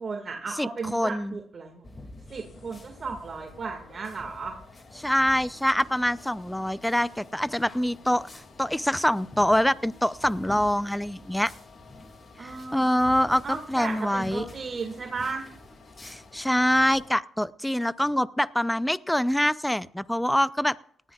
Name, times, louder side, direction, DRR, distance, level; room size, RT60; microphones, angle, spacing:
voice 1, 0.0-1.9 2.3-4.6 12.4-13.0 13.3-15.5, right 4 dB, 40° right, 2 dB, 1.9 m, -35 dB
voice 2, 0.6-1.3 5.0-11.5 12.4-14.4 16.0-20.8, equal, 5° left, 17 dB, 0.5 m, -25 dB
sound 1, 1.8-17.1, left 1 dB, 25° left, 2.3 m, -48 dB
sound 2, 2.3-17.1, left 4 dB, 55° left, 2.5 m, -53 dB
19.0 x 14.0 x 2.4 m, 0.65 s
cardioid pair, 90°, 0 cm